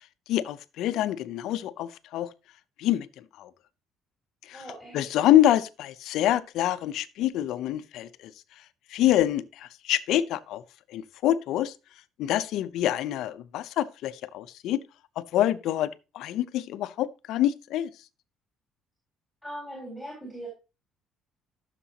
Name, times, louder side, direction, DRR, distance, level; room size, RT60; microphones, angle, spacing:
voice 1, 0.3-2.3 2.8-3.1 3.4-3.5 4.5-4.6 4.9-8.1 8.9-10.6 10.9-11.7 12.2-14.8 15.2-15.9 16.1-17.9, left 13 dB, 65° left, 0.6 m, -26 dB
voice 2, 4.5-5.3 19.4-20.5, right 1 dB, ahead, 3.8 m, -40 dB
14.0 x 6.7 x 2.9 m
cardioid pair, 160°, 0 cm